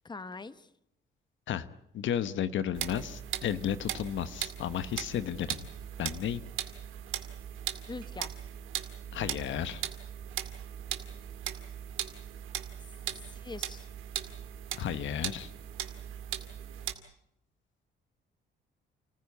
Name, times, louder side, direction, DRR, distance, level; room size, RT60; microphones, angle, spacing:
voice 1, 0.0-0.7 7.9-8.4 13.1-13.9, left 3 dB, 20° left, 14 dB, 1.2 m, -43 dB
voice 2, 1.9-5.7 6.0-6.4 9.1-9.9 14.7-15.5, left 10 dB, 70° left, 13 dB, 1.1 m, -33 dB
sound 1, 2.7-16.9, right 11 dB, 90° right, 2.2 m, -39 dB
29.5 x 15.0 x 8.4 m, 0.78 s
cardioid pair, 90°, 20 cm